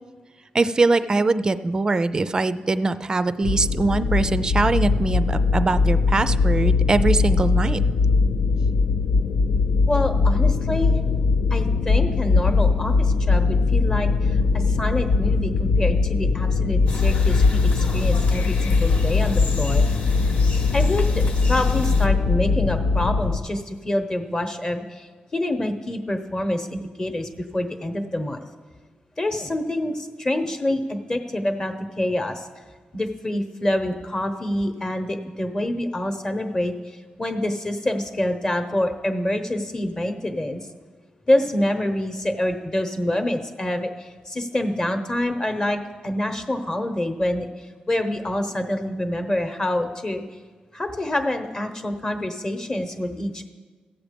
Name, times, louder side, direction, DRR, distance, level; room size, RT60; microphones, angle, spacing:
voice 1, 0.5-7.8, right 3 dB, 25° right, 13 dB, 0.4 m, -22 dB
sound 1, 3.4-23.4, left 4 dB, 70° left, 0.6 m, -20 dB
voice 2, 9.9-10.9 11.5-19.8 20.7-21.2 21.5-28.4 29.2-32.5 32.9-40.7 41.3-50.2 50.7-53.4, left 1 dB, 25° left, 7 dB, 0.9 m, -26 dB
sound 2, 16.9-22.1, left 2 dB, 55° left, 1.1 m, -35 dB
15.5 x 7.4 x 5.2 m, 1.4 s
wide cardioid pair, 125°, 3 cm